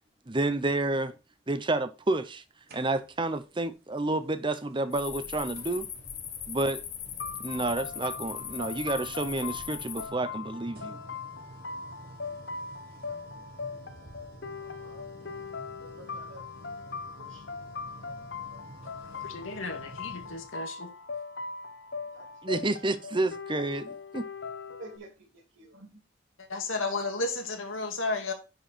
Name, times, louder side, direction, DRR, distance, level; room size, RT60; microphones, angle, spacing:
voice 1, 0.3-1.1 1.5-2.4 2.7-5.9 6.5-6.8 7.4-11.0 22.4-24.2, right 2 dB, 25° right, 0.8 m, -30 dB
sound 1, 2.7-3.3 4.7-4.8 5.5-20.6, right 1 dB, 50° right, 1.4 m, -50 dB
sound 2, 4.9-10.1, left 8 dB, 40° left, 1.4 m, -39 dB
sound 3, 7.2-25.0, left 4 dB, 60° left, 0.9 m, -40 dB
voice 2, 13.0-13.4 13.8-14.1 14.6-15.1 15.9-16.5 17.1-19.2 22.0-22.4 22.7-22.8 24.8-25.9, right 2 dB, 80° right, 3.4 m, -52 dB
voice 3, 19.2-20.9 26.4-28.3, left 3 dB, 80° left, 2.2 m, -33 dB
10.5 x 4.7 x 4.4 m
head